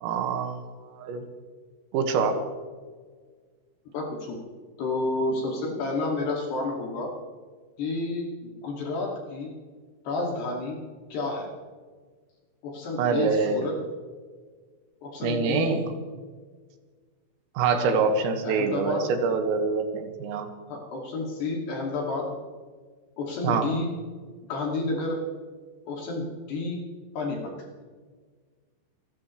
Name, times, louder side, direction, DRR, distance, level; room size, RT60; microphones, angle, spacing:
voice 1, 0.0-1.3 1.9-2.4 13.0-13.7 15.2-15.9 17.6-20.5 23.4-23.7, right 5 dB, 90° right, 5 dB, 4.3 m, -25 dB
voice 2, 3.9-4.4 4.8-7.1 7.8-9.5 10.1-10.8 11.1-11.5 12.6-13.8 15.0-15.8 17.9-18.0 18.4-19.1 20.7-22.4 23.2-23.9 24.5-25.2 25.9-26.8 27.1-27.7, left 2 dB, 60° left, -1 dB, 4.0 m, -30 dB
28.5 x 13.5 x 3.2 m, 1.5 s
omnidirectional pair, 5.9 m